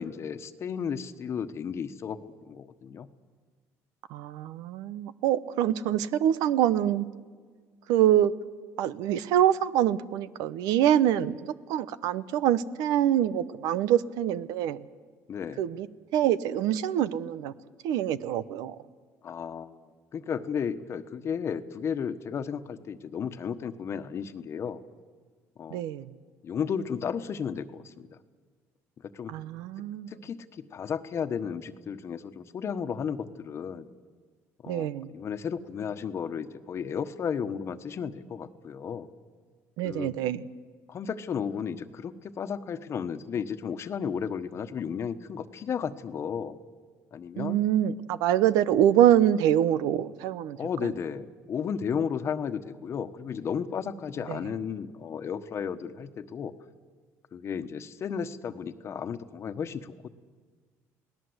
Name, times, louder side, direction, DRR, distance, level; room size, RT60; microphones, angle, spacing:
voice 1, 0.0-3.1 15.3-15.7 19.2-24.8 25.6-25.8 26.4-28.2 29.0-29.3 30.1-33.9 34.6-39.1 39.8-40.1 40.9-46.6 47.1-47.6 50.6-56.5 57.3-60.1, left 7 dB, 45° left, 10 dB, 1.3 m, -34 dB
voice 2, 4.1-7.1 7.9-8.3 8.8-14.8 15.6-15.9 16.1-17.5 17.8-18.8 25.7-26.1 29.3-30.1 34.7-35.1 39.8-40.4 47.4-50.6 50.8-50.9 54.3-54.4, right 11 dB, 80° right, 15 dB, 0.9 m, -25 dB
29.0 x 18.5 x 8.1 m, 1.5 s
cardioid pair, 110°, 7 cm